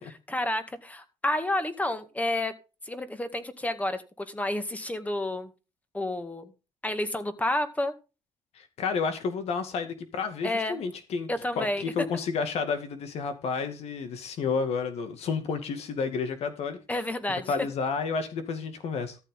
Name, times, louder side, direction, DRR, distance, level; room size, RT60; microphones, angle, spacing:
voice 1, 0.3-2.5 2.8-5.5 5.9-6.5 6.8-7.9 10.4-10.8 11.3-11.9 16.9-17.5, left 1 dB, 15° left, 2.0 m, -30 dB
voice 2, 8.5-11.3 11.6-16.8 17.5-19.2, left 5 dB, 65° left, 2.2 m, -31 dB
14.0 x 7.9 x 3.9 m
cardioid pair, 100°, 11 cm